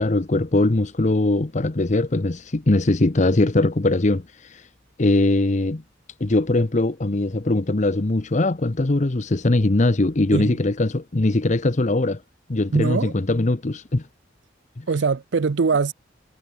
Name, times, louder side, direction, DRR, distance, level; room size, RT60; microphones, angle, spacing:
voice 1, 0.0-4.7 5.0-5.8 6.2-12.2 12.5-14.1 14.8-14.9, left 2 dB, 40° left, 0.8 m, -21 dB
voice 2, 12.7-13.1 14.9-15.9, right 4 dB, 70° right, 0.5 m, -22 dB
head